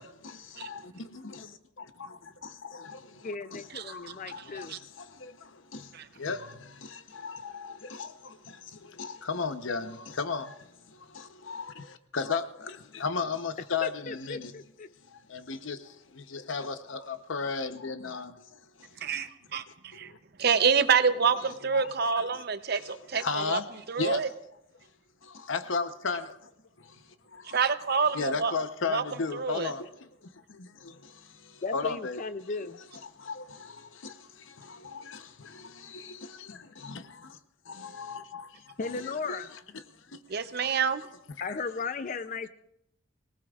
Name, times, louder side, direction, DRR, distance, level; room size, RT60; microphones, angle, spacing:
voice 1, 0.0-3.1 3.5-3.6 3.9-5.9 6.2-14.5 15.1-18.4 18.8-18.9 20.0-20.2 21.7-21.9 22.7-22.8 23.1-23.7 24.0-24.2 25.2-26.5 26.8-27.0 27.3-27.6 28.1-29.9 30.5-32.2 33.2-37.4 37.7-39.5 40.1-40.2 40.6-40.8, left 4 dB, 65° left, 10 dB, 0.8 m, -36 dB
voice 2, 3.2-4.8 13.8-14.9 31.6-32.8 38.8-39.5 41.4-42.5, left 4 dB, 40° left, 12 dB, 0.4 m, -36 dB
voice 3, 19.0-20.1 20.4-23.6 23.9-24.3 27.5-28.5 28.9-29.0 29.3-29.7 40.3-41.0, right 6 dB, 50° right, 11 dB, 0.7 m, -27 dB
25.0 x 18.5 x 2.4 m, 0.80 s
head